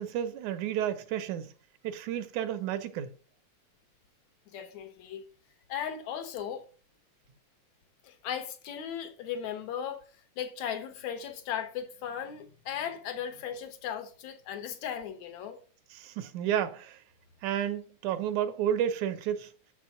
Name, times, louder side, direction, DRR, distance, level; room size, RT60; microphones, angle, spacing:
voice 1, 0.0-1.5 1.8-3.1 16.0-17.0 17.4-19.5, right 10 dB, 80° right, 2.2 m, -31 dB
voice 2, 4.5-5.2 5.7-6.7 8.0-10.0 10.4-15.6, left 9 dB, 75° left, 2.4 m, -37 dB
6.9 x 6.2 x 5.7 m
omnidirectional pair, 3.4 m